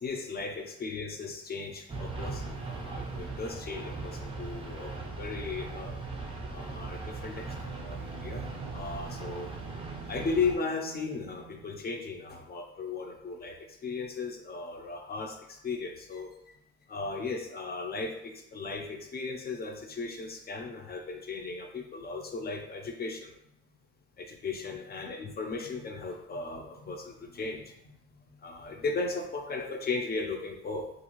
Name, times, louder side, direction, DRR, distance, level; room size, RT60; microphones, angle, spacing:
voice 1, 0.0-4.9 5.2-5.9 6.5-7.4 7.8-8.4 8.7-9.5 10.1-13.5 13.8-16.3 16.9-23.3 24.2-27.6 28.4-30.9, left 4 dB, 30° left, 2 dB, 0.5 m, -36 dB
sound 1, 1.9-10.6, right 3 dB, 20° right, 0.5 m, -39 dB
Bowed string instrument, 7.4-11.9, right 7 dB, 85° right, 0.5 m, -48 dB
2.5 x 2.3 x 3.0 m, 0.79 s
cardioid pair, 90°, 30 cm